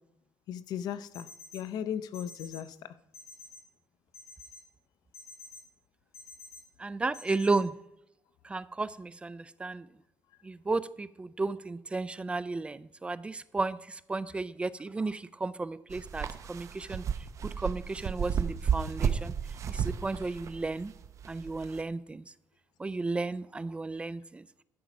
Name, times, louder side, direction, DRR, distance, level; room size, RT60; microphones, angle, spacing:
voice 1, 0.5-1.3 1.5-2.9, left 9 dB, 85° left, 0.5 m, -36 dB
sound 1, 1.1-1.6 2.1-2.6 3.1-3.6 4.1-4.6 5.1-5.6 6.1-6.6 7.1-7.6, left 4 dB, 50° left, 4.8 m, -48 dB
voice 2, 6.8-7.7 8.4-9.9 10.4-17.0 17.4-19.3 19.7-20.9 21.3-22.2 22.8-24.4, right 3 dB, 15° right, 0.3 m, -33 dB
sound 2, 15.9-21.8, right 7 dB, 50° right, 0.7 m, -33 dB
12.5 x 5.2 x 5.9 m
cardioid pair, 130°, 7 cm